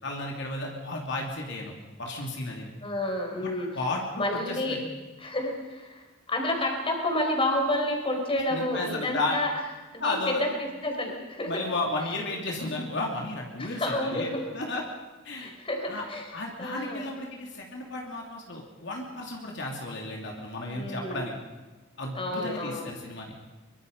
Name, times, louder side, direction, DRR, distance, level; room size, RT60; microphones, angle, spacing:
voice 1, 0.0-1.7 2.0-2.7 3.4-4.8 8.5-9.4 10.0-10.4 11.5-14.8 15.2-15.5 15.9-16.0 16.3-21.3 22.0-23.3, left 2 dB, 65° left, 0 dB, 3.1 m, -33 dB
voice 2, 2.8-3.7 4.1-4.8 5.2-9.5 9.9-10.5 10.8-11.6 13.6-14.4 15.4-16.3 16.6-17.1 20.7-21.2 22.1-22.9, left 1 dB, 30° left, 2 dB, 4.6 m, -30 dB
24.0 x 24.0 x 5.5 m, 1.2 s
head